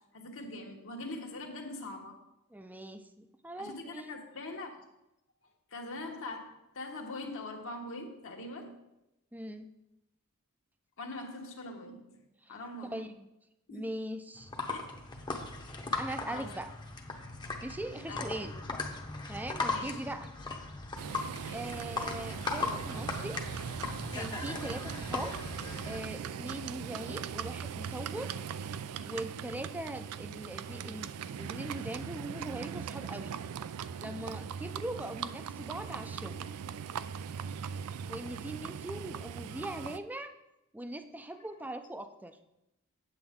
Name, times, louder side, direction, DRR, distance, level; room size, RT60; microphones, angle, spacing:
voice 1, 0.1-2.2 3.6-4.7 5.7-8.8 11.0-12.2 12.5-13.0 13.7-13.9 14.7-14.8 16.3-16.5 18.1-18.2 19.7-20.0 21.2-21.6 26.3-26.4, left 2 dB, 65° left, 1 dB, 1.2 m, -42 dB
voice 2, 2.5-4.2 9.3-9.7 12.5-12.6 12.9-13.3 13.7-14.5 16.0-16.7 17.6-18.6 19.3-20.3 21.5-23.4 24.1-25.4 25.8-28.4 29.0-33.3 34.0-36.5 38.1-40.3 40.7-42.4, right 1 dB, 10° right, 8 dB, 0.5 m, -41 dB
sound 1, 14.4-26.0, left 3 dB, 20° left, 0.8 m, -38 dB
Livestock farm animals working animals, 21.0-40.0, right 7 dB, 75° right, 0.4 m, -40 dB
8.0 x 7.9 x 3.6 m, 0.89 s
head